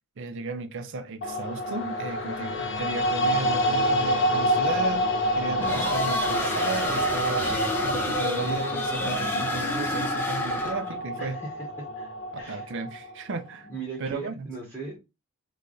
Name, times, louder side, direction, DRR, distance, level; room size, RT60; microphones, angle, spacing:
voice 1, 0.2-7.6 7.8-11.4 12.3-13.7 14.0-14.5, right 3 dB, 55° right, 0.5 m, -34 dB
sound 1, 1.2-13.4, equal, 55° left, 0.6 m, -28 dB
sound 2, 5.6-11.0, left 1 dB, 10° left, 0.6 m, -30 dB
voice 2, 11.2-12.7 13.6-15.0, right 4 dB, 15° right, 1.1 m, -39 dB
3.3 x 2.3 x 3.9 m
head